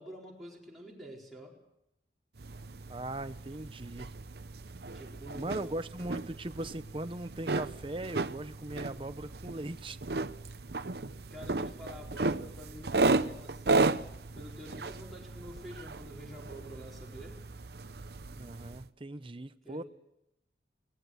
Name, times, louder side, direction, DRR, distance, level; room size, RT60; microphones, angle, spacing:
voice 1, 0.0-1.6 4.9-5.9 11.3-17.4 19.6-19.8, equal, ahead, 4.4 m, -47 dB
sound 1, 2.4-18.9, right 3 dB, 60° right, 0.8 m, -34 dB
voice 2, 2.9-4.1 5.3-10.0 18.3-19.8, right 1 dB, 30° right, 0.8 m, -39 dB
23.0 x 19.0 x 7.9 m
head